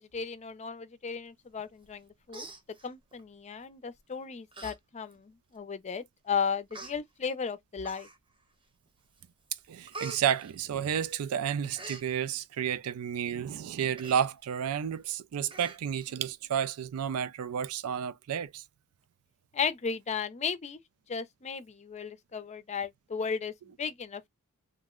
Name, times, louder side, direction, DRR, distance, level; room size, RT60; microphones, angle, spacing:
voice 1, 0.0-2.5 2.8-8.1 19.5-20.8 21.1-24.3, left 6 dB, 30° left, 0.4 m, -35 dB
Human voice, 1.8-2.0 2.3-3.2 4.0-4.1 4.5-4.8 5.1-5.2 6.0-6.1 6.7-6.9 7.8-8.4 8.9-9.2 9.5-11.2 11.5-12.0 14.0-14.3 14.6-14.7 15.0-15.1 15.5-16.1 16.5-16.6, right 3 dB, 25° right, 0.8 m, -45 dB
voice 2, 9.7-18.6, right 8 dB, 75° right, 0.4 m, -31 dB
2.5 x 2.1 x 3.6 m
head